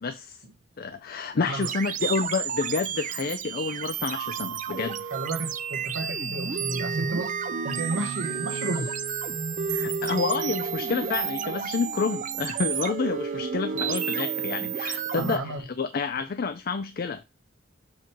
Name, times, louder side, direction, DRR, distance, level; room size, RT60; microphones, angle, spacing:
voice 1, 0.0-0.4 0.8-5.1 9.7-17.2, left 4 dB, 50° left, 0.4 m, -29 dB
sound 1, 1.6-15.4, right 7 dB, 40° right, 0.5 m, -31 dB
voice 2, 5.1-7.4 7.6-9.0 15.1-15.7, right 2 dB, 85° right, 1.2 m, -32 dB
7.3 x 3.1 x 4.4 m
head